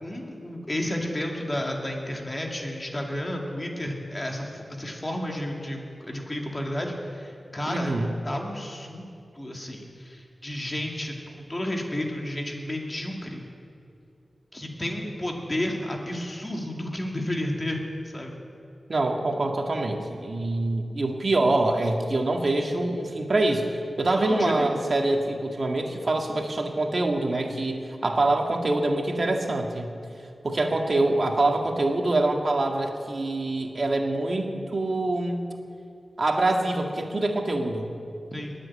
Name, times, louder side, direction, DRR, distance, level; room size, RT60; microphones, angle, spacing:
voice 1, 0.0-8.0 8.2-9.1 9.3-13.4 14.5-17.8 18.1-18.4 24.1-24.7 38.3-38.5, left 1 dB, 25° left, 0 dB, 2.3 m, -32 dB
voice 2, 7.7-8.1 18.9-23.7 24.0-29.9 30.4-35.4 36.2-37.9, right 2 dB, 50° right, 2 dB, 1.8 m, -25 dB
20.5 x 7.7 x 8.7 m, 2.6 s
wide cardioid pair, 110°, 0 cm